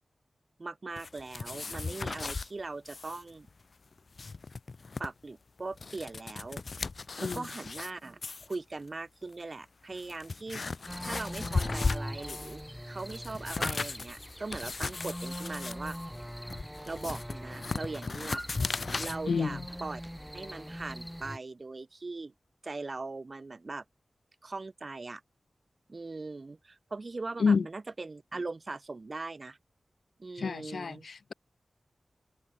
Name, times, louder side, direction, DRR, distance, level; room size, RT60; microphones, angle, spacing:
voice 1, 0.6-3.5 5.0-6.6 7.2-10.6 11.0-16.0 16.9-18.4 18.9-20.0 20.3-22.3 22.6-23.8 24.4-25.2 25.9-29.6 30.2-31.1, right 3 dB, 45° right, 4.1 m, -40 dB
sound 1, 1.0-2.5 2.9-3.2 3.5-3.6 4.0-5.1 5.6-7.9 8.2-8.6 9.3-9.4 9.9-12.6 13.0-19.2, left 4 dB, 60° left, 1.9 m, -36 dB
sound 2, 10.9-21.4, equal, ahead, 6.3 m, -41 dB
voice 2, 19.3-19.6 27.4-27.6 30.4-31.3, left 5 dB, 80° left, 1.4 m, -28 dB
wide cardioid pair, 80°, 0 cm